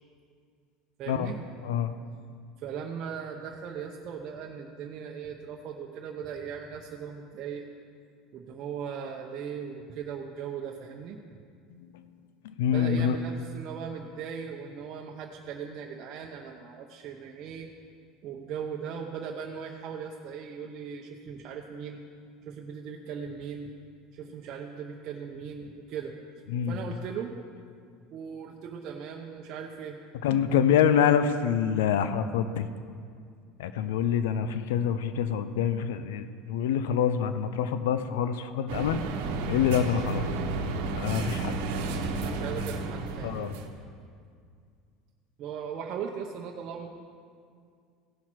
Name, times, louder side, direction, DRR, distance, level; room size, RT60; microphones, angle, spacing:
voice 1, 1.0-1.4 2.6-7.7 8.3-11.4 12.7-17.7 18.2-22.0 22.5-23.7 24.1-26.1 26.7-27.4 28.1-30.0 42.2-43.4 45.4-46.9, right 7 dB, 50° right, -1 dB, 0.8 m, -38 dB
voice 2, 11.7-12.0 12.4-13.2 26.5-26.8 30.2-32.7 33.6-39.0 39.5-40.3 41.0-41.6 43.2-43.5, left 8 dB, 90° left, 11 dB, 0.5 m, -26 dB
sound 1, 38.7-43.7, right 3 dB, 80° right, 1.1 m, -32 dB
16.5 x 5.8 x 4.6 m, 2.2 s
supercardioid pair, 120°, 0 cm